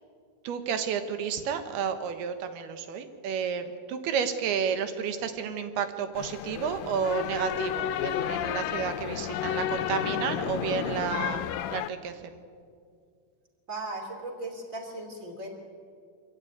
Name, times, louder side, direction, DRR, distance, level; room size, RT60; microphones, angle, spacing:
voice 1, 0.5-11.5 11.7-12.4, right 7 dB, 85° right, 9 dB, 3.4 m, -31 dB
sound 1, 6.2-11.9, left 11 dB, 75° left, 2.2 m, -31 dB
voice 2, 13.7-15.5, right 2 dB, 20° right, 3 dB, 3.1 m, -37 dB
25.0 x 14.0 x 9.5 m, 2.2 s
omnidirectional pair, 4.4 m